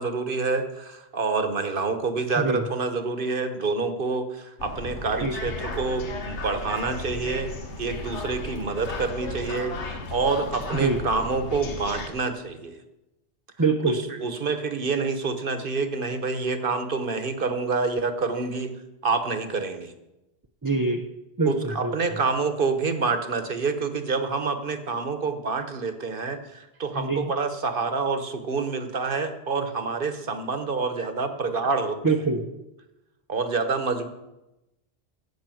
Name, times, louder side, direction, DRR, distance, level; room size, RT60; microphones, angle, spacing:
voice 1, 0.0-7.5 7.8-12.8 13.8-19.9 21.4-32.0 33.3-34.1, right 4 dB, 55° right, 9 dB, 1.2 m, -27 dB
sound 1, 4.6-12.1, left 3 dB, 90° left, 1.4 m, -35 dB
voice 2, 13.6-14.0 20.6-21.0 21.4-21.9 26.9-27.3 32.0-32.4, right 3 dB, 20° right, 3 dB, 0.6 m, -24 dB
10.5 x 8.1 x 7.7 m, 0.97 s
omnidirectional pair, 1.1 m